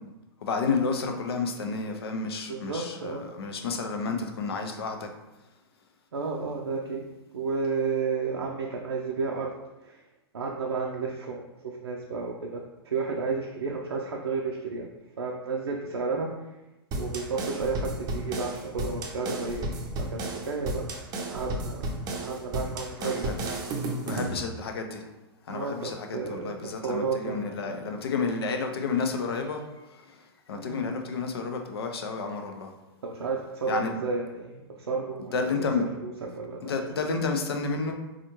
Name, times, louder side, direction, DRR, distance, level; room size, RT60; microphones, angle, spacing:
voice 1, 0.4-5.1 23.0-23.4 23.8-25.1 25.5-32.7 33.7-34.0 35.2-35.8 36.6-37.9, left 4 dB, 70° left, 4 dB, 0.6 m, -31 dB
voice 2, 2.5-3.3 6.1-7.0 7.3-9.5 9.8-10.0 10.3-14.9 15.2-16.3 17.0-19.8 20.3-20.8 21.3-23.4 25.5-27.7 30.5-30.8 33.0-35.5 35.8-36.7, right 4 dB, 80° right, -1 dB, 0.5 m, -32 dB
sound 1, 16.9-24.4, right 2 dB, 30° right, 0.6 m, -33 dB
4.2 x 2.4 x 2.9 m, 1.0 s
figure-of-eight pair, 105°, 13 cm